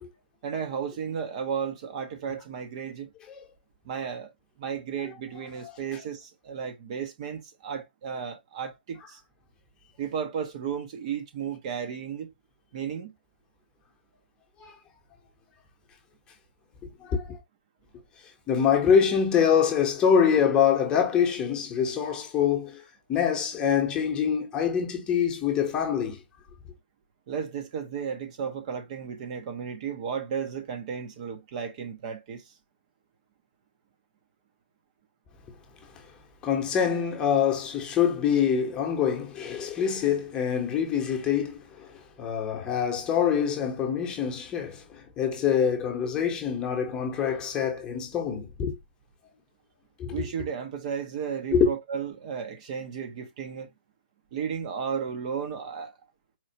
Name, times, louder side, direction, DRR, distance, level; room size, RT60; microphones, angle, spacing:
voice 1, 0.4-3.1 3.8-4.3 4.6-9.2 10.0-12.3 12.7-13.1 27.3-32.5 50.1-53.7 54.3-55.9, right 7 dB, 40° right, 0.7 m, -34 dB
voice 2, 17.0-17.4 18.5-22.8 23.1-26.2 36.4-48.8 50.0-50.3 51.5-51.7, left 7 dB, 15° left, 0.9 m, -25 dB
4.4 x 2.4 x 2.8 m
hypercardioid pair, 140°, 5 cm